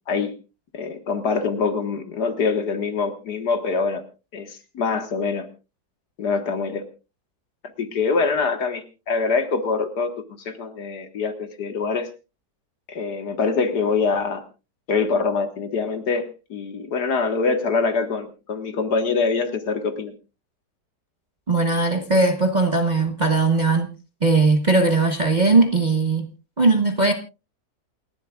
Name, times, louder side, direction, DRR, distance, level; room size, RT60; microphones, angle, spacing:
voice 1, 0.7-4.0 4.3-5.5 6.2-6.9 7.8-12.1 12.9-14.4 14.9-20.1, left 4 dB, 60° left, 2.1 m, -24 dB
voice 2, 21.5-23.9 24.2-26.3 26.6-27.1, right 3 dB, 30° right, 1.0 m, -19 dB
28.0 x 11.5 x 2.4 m
omnidirectional pair, 2.0 m